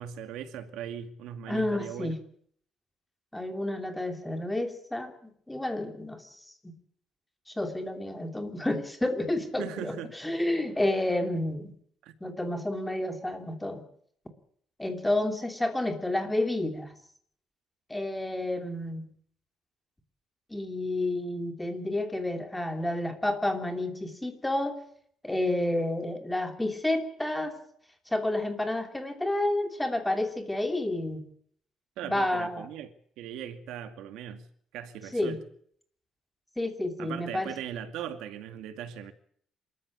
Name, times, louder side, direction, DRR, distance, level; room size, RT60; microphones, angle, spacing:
voice 1, 0.0-2.1 9.6-10.1 12.0-12.1 32.0-32.9 33.2-34.4 34.7-35.4 37.0-39.1, right 9 dB, 85° right, 2.3 m, -39 dB
voice 2, 1.5-2.2 3.3-6.3 6.6-6.7 7.5-11.7 12.2-13.8 14.8-16.9 17.9-19.1 20.5-24.8 25.2-27.6 28.1-31.3 32.0-32.7 35.1-35.4 36.6-37.5, left 1 dB, 5° left, 3.0 m, -30 dB
27.0 x 14.0 x 8.4 m
cardioid pair, 175°, 0 cm